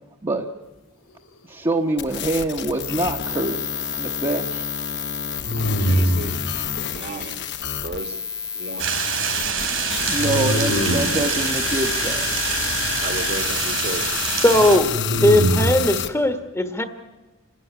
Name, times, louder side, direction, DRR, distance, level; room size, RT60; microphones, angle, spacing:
voice 1, 1.5-3.7 4.0-4.7 10.1-12.3, right 2 dB, 25° right, 1 dB, 1.1 m, -25 dB
sound 1, 2.0-16.1, left 8 dB, 60° left, 1.0 m, -29 dB
sound 2, 2.8-3.4 5.4-6.4 10.2-11.2 14.6-15.8, equal, 80° left, 3.2 m, -23 dB
voice 2, 5.8-6.4 6.8-7.5 7.8-8.2 8.5-9.0 13.0-14.1, right 2 dB, 50° right, 8 dB, 1.7 m, -33 dB
sound 3, 8.8-14.8, right 6 dB, 75° right, 4.2 m, -26 dB
voice 3, 14.4-14.9 15.2-16.8, left 1 dB, 15° left, 9 dB, 1.2 m, -18 dB
28.5 x 13.0 x 9.8 m, 1.2 s
head